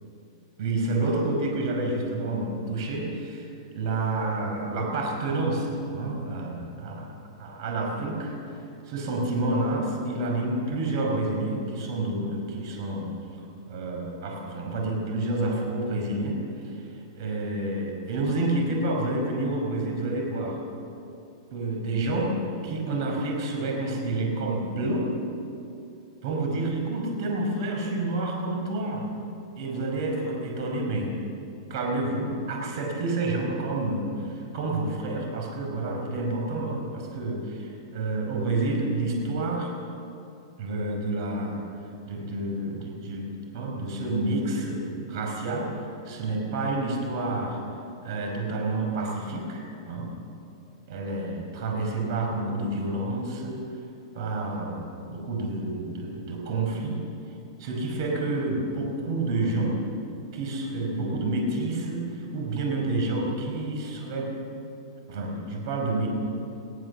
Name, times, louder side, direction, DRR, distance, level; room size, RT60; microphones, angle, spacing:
voice 1, 0.6-7.1 7.4-8.4 8.8-13.2 13.7-20.6 21.5-25.1 26.2-29.1 29.6-31.2 31.7-39.7 40.6-41.6 42.1-47.6 48.0-50.2 50.9-53.7 54.1-57.0 57.6-59.9 60.3-64.4 65.1-66.1, right 2 dB, 55° right, 1 dB, 5.4 m, -29 dB
21.0 x 17.0 x 7.2 m, 2.7 s
supercardioid pair, 155°, 3 cm